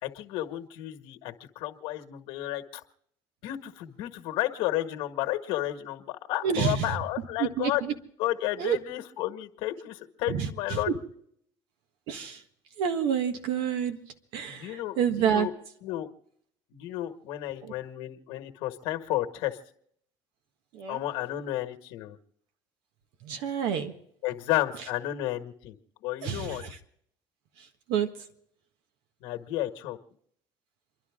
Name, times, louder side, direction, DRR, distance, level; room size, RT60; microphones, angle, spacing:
voice 1, 0.0-2.8 3.4-7.8 8.2-10.9 14.4-15.5 15.8-16.1 16.7-19.6 20.9-22.2 24.2-26.6 29.2-30.0, left 15 dB, 80° left, 6 dB, 1.6 m, -32 dB
voice 2, 6.4-7.0 7.4-7.9 8.6-8.8 10.2-11.0 12.1-12.4 12.8-14.0 14.3-15.5 17.6-17.7 20.7-21.0 23.2-23.9 26.2-26.8 27.6-28.1, right 8 dB, 80° right, 7 dB, 1.6 m, -29 dB
29.0 x 11.5 x 3.7 m, 0.69 s
cardioid pair, 120°, 9 cm